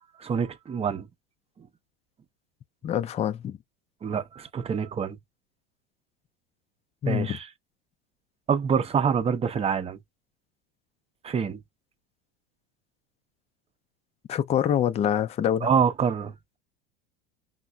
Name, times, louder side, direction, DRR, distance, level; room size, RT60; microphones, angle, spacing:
voice 1, 0.2-1.1 4.0-5.2 7.1-7.5 8.5-10.0 11.2-11.6 15.6-16.3, right 6 dB, 20° right, 0.6 m, -26 dB
voice 2, 2.8-3.6 7.0-7.4 14.3-15.7, left 9 dB, 25° left, 0.4 m, -25 dB
5.4 x 2.0 x 2.3 m
hypercardioid pair, 100°, 29 cm